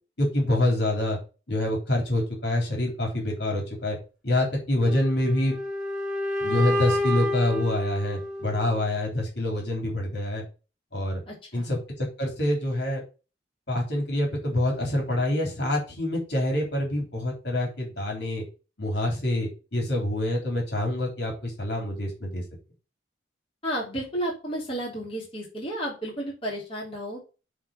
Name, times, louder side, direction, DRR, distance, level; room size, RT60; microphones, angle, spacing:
voice 1, 0.2-1.2 1.5-4.0 4.2-5.5 6.4-10.4 10.9-11.2 11.5-13.0 13.7-18.4 18.8-22.4, left 1 dB, 65° left, 0 dB, 3.7 m, -26 dB
sound 1, 4.8-8.8, left 1 dB, 5° right, 2.5 m, -29 dB
voice 2, 11.3-11.7 23.6-27.2, right 1 dB, 30° left, -4 dB, 3.3 m, -32 dB
7.4 x 4.1 x 6.6 m, 0.33 s
head